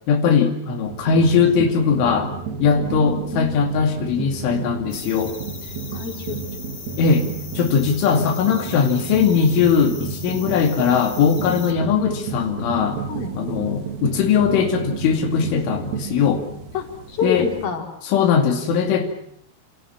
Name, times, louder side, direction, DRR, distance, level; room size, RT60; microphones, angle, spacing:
voice 1, 0.1-2.3 2.6-5.4 7.0-7.3 7.5-13.0 13.3-16.4 17.2-17.5 18.0-19.2, left 6 dB, 85° left, 4 dB, 4.9 m, -20 dB
sound 1, 0.8-17.7, right 6 dB, 40° right, 4.0 m, -32 dB
voice 2, 2.8-3.6 5.9-6.4 11.5-11.6 13.1-13.3 16.7-17.9, left 5 dB, 50° left, 3 dB, 6.2 m, -28 dB
sound 2, 4.9-11.7, left 5 dB, 35° left, 2.2 m, -39 dB
29.0 x 29.0 x 6.1 m, 0.70 s
omnidirectional pair, 5.5 m